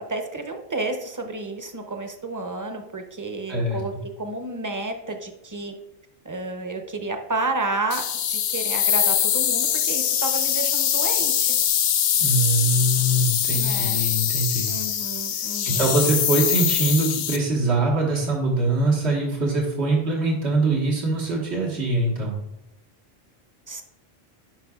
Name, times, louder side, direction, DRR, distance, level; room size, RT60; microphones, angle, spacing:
voice 1, 0.0-5.7 6.2-11.6 13.5-14.0 14.6-16.1 23.7-23.8, right 2 dB, 25° right, 5 dB, 0.5 m, -31 dB
voice 2, 3.5-3.8 12.2-14.7 15.3-22.4, right 2 dB, 90° right, -3 dB, 1.7 m, -23 dB
sound 1, 7.9-17.4, left 9 dB, 70° left, 0.8 m, -23 dB
9.9 x 5.7 x 2.3 m, 0.88 s
omnidirectional pair, 1.1 m